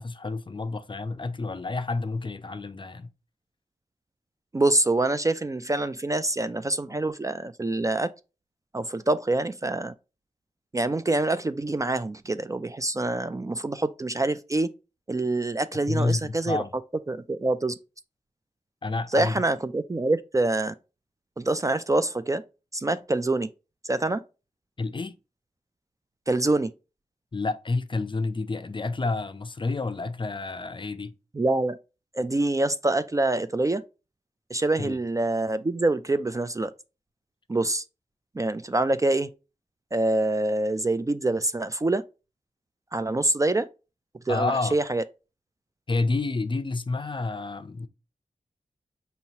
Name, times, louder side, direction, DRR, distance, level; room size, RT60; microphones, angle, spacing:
voice 1, 0.0-3.1 15.9-16.7 18.8-19.4 24.8-25.2 27.3-31.1 34.8-35.0 44.3-44.8 45.9-47.9, left 3 dB, 35° left, 0.5 m, -29 dB
voice 2, 4.5-8.1 8.7-9.9 10.7-14.7 15.1-16.6 17.1-17.7 19.1-20.7 21.4-22.4 22.7-23.5 23.8-24.2 26.3-26.7 31.4-31.8 32.1-33.8 34.5-36.7 37.5-37.8 38.4-39.3 39.9-42.0 42.9-43.7 44.3-45.0, right 2 dB, 25° right, 0.3 m, -25 dB
5.5 x 2.8 x 2.7 m
cardioid pair, 50°, 14 cm